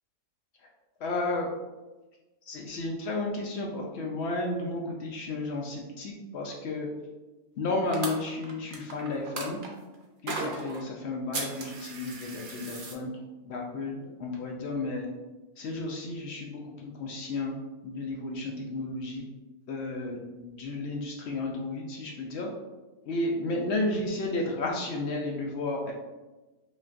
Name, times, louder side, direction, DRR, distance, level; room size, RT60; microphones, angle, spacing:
voice 1, 1.0-1.5 2.5-6.9 7.6-9.6 10.2-13.1 13.4-15.1 15.6-17.6 17.8-19.3 19.7-22.5 23.1-25.9, left 2 dB, 70° left, 0 dB, 0.6 m, -32 dB
sound 1, 7.9-9.7 10.3-10.8 11.3-12.9, right 3 dB, 80° right, 0.4 m, -36 dB
5.2 x 2.3 x 2.5 m, 1.2 s
omnidirectional pair, 1.6 m